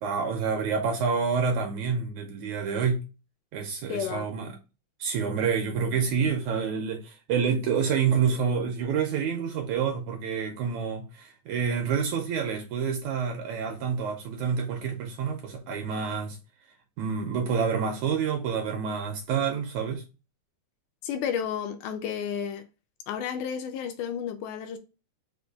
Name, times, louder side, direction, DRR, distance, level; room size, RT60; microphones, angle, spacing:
voice 1, 0.0-3.0 3.5-4.5 5.0-16.4 17.0-20.0, right 6 dB, 80° right, 1.7 m, -28 dB
voice 2, 3.9-4.3 21.0-22.6 23.1-24.8, left 8 dB, 80° left, 1.9 m, -32 dB
5.9 x 2.2 x 3.4 m
omnidirectional pair, 3.7 m